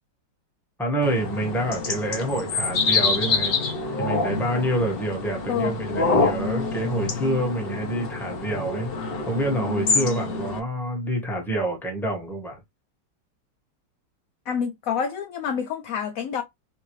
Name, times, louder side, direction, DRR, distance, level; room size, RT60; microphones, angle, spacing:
voice 1, 0.8-3.5 4.0-8.9 9.3-12.6, right 1 dB, ahead, 1.0 m, -27 dB
sound 1, 1.0-10.6, left 3 dB, 45° left, 0.8 m, -26 dB
voice 2, 14.5-16.4, left 7 dB, 75° left, 0.8 m, -27 dB
5.7 x 2.6 x 3.1 m
omnidirectional pair, 2.0 m